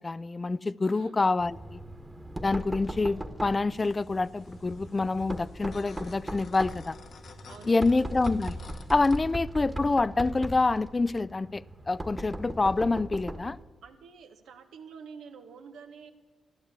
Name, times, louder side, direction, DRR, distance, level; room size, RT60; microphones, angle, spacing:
voice 1, 0.0-1.8 2.4-7.0 7.7-8.6 8.9-13.6, left 3 dB, 30° left, 19 dB, 0.4 m, -27 dB
voice 2, 0.9-1.2 7.5-8.2 13.8-16.1, right 6 dB, 85° right, 6 dB, 1.2 m, -48 dB
Knock, 1.4-13.6, right 1 dB, 20° right, 1.4 m, -39 dB
sound 1, 3.7-9.2, left 5 dB, 70° left, 1.2 m, -52 dB
13.0 x 11.5 x 8.1 m, 1.4 s
supercardioid pair, 60°, 0 cm